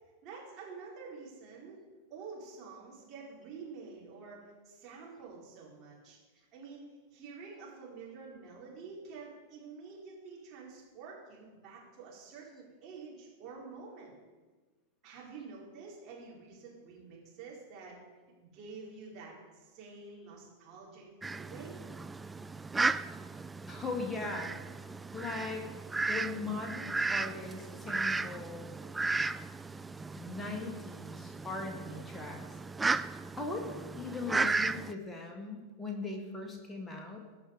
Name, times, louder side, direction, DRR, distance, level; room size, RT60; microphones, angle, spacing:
voice 1, 0.2-1.8 2.1-14.1 15.0-18.0 18.4-21.8, right 4 dB, 35° right, -4 dB, 4.3 m, -48 dB
Fowl, 21.2-34.9, right 3 dB, 10° right, 0.3 m, -35 dB
voice 2, 23.7-24.5 25.1-25.7 26.1-28.7 30.2-32.6 33.4-37.2, left 3 dB, 10° left, 1 dB, 1.9 m, -39 dB
20.0 x 6.7 x 4.9 m, 1.3 s
figure-of-eight pair, 90°, 0 cm